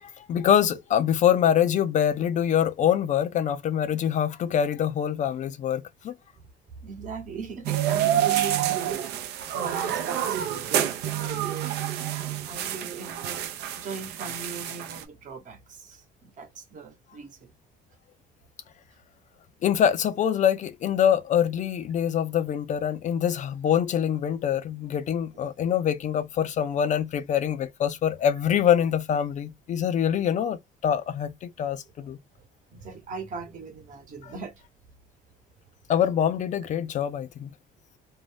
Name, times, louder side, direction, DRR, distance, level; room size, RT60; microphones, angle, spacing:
voice 1, 0.0-6.1 19.6-32.2 34.2-34.3 35.9-37.5, left 9 dB, 45° left, 0.4 m, -24 dB
voice 2, 6.8-9.0 9.5-11.7 12.4-17.5 25.3-25.4 32.0-32.1 32.7-34.5, right 4 dB, 50° right, 1.0 m, -39 dB
sound 1, 7.6-15.0, right 11 dB, 80° right, 0.6 m, -28 dB
2.6 x 2.1 x 3.2 m
cardioid pair, 110°, 17 cm